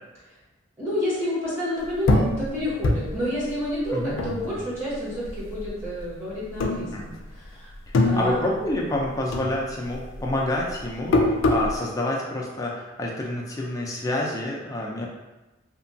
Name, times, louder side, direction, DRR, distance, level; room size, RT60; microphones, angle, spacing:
voice 1, 0.8-7.7 8.0-8.4, left 1 dB, 15° right, -10 dB, 1.0 m, -29 dB
sound 1, 2.1-4.9 5.3-6.1 6.5-7.4 7.7-9.0 9.3-11.8, left 2 dB, 85° left, 0.4 m, -24 dB
voice 2, 7.9-15.1, left 1 dB, 15° left, -2 dB, 0.3 m, -28 dB
2.9 x 2.2 x 2.6 m, 1.1 s
head